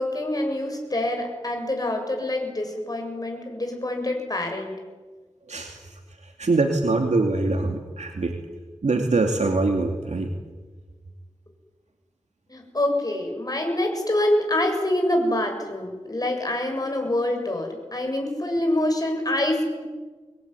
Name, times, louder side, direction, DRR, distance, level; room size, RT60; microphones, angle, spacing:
voice 1, 0.0-4.8 12.5-19.8, left 1 dB, 30° left, 3 dB, 7.2 m, -26 dB
voice 2, 5.5-5.8 6.4-8.4 8.8-10.3, right 3 dB, 75° right, 3 dB, 2.7 m, -23 dB
26.0 x 21.5 x 9.7 m, 1.4 s
wide cardioid pair, 85°, 12 cm